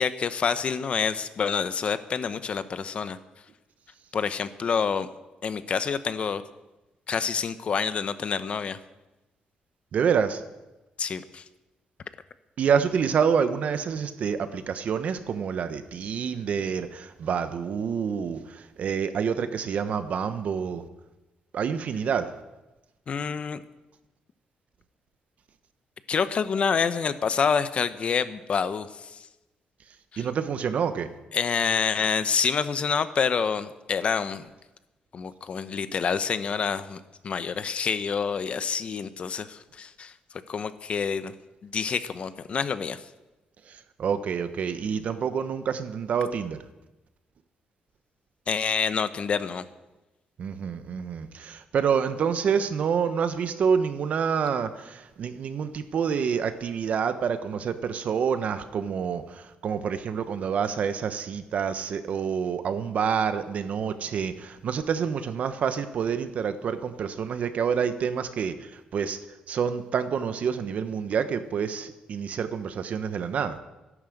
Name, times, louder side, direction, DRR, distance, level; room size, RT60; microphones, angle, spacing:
voice 1, 0.0-3.2 4.1-5.1 5.4-6.4 7.1-8.8 11.0-11.4 23.1-23.6 26.1-29.2 30.1-30.2 31.3-34.5 35.1-40.1 40.5-41.3 41.6-43.0 48.5-49.6, left 6 dB, 45° left, 12 dB, 0.9 m, -27 dB
voice 2, 9.9-10.4 12.6-20.8 21.5-22.3 30.2-31.1 43.7-46.6 50.4-69.2 69.5-73.6, right 7 dB, 60° right, 10 dB, 1.2 m, -27 dB
13.0 x 11.0 x 7.9 m, 1.0 s
cardioid pair, 125°, 3 cm